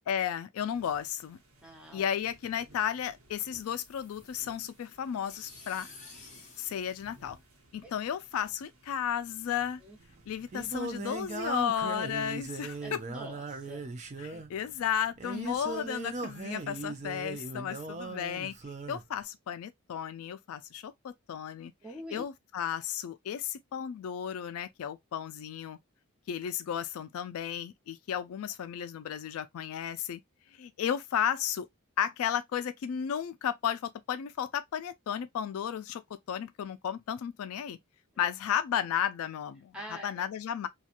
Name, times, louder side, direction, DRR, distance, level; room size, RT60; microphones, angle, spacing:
voice 1, 0.1-1.4 1.9-5.9 6.6-7.4 7.7-9.8 10.3-13.0 14.2-18.5 18.9-25.8 26.3-30.2 30.5-31.7 32.0-36.0 36.3-37.8 38.2-40.7, left 9 dB, 70° left, 0.3 m, -34 dB
sound 1, 0.6-13.1, right 1 dB, 65° right, 1.0 m, -61 dB
voice 2, 1.6-2.1 7.8-7.9 9.8-10.0 12.8-13.8 14.3-14.4 21.8-22.3 38.1-38.3 39.7-40.2, equal, 5° right, 0.8 m, -45 dB
sound 2, 3.5-7.9, left 3 dB, 35° left, 0.8 m, -53 dB
Singing, 10.0-19.1, right 3 dB, 30° right, 0.4 m, -38 dB
2.8 x 2.3 x 2.4 m
head